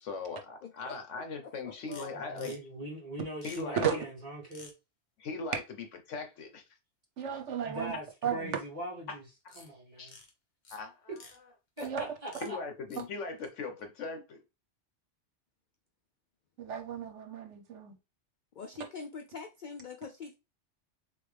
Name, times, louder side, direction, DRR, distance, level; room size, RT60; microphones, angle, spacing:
voice 1, 0.0-2.5 3.4-3.8 5.2-5.6 6.1-6.6 10.0-10.1 10.7-11.0 12.4-14.4, left 4 dB, 80° left, 1.3 m, -39 dB
voice 2, 0.6-2.6 18.6-20.3, left 5 dB, 60° left, 0.5 m, -45 dB
sound 1, 1.9-2.1 2.4-2.6 3.4-3.6 4.5-4.7 9.5-9.7 10.0-10.3 10.7-10.8 11.2-11.4 11.8-11.9 12.3-12.5 12.9-13.1 13.4-13.5, left 3 dB, 40° left, 1.1 m, -51 dB
voice 3, 2.1-4.7 7.6-8.1 8.3-9.2 9.5-10.2 11.8-12.6, equal, 30° right, 1.7 m, -41 dB
voice 4, 7.2-8.5 11.8-12.0 16.6-18.0, right 8 dB, 75° right, 1.1 m, -34 dB
3.9 x 3.3 x 3.3 m
omnidirectional pair, 1.2 m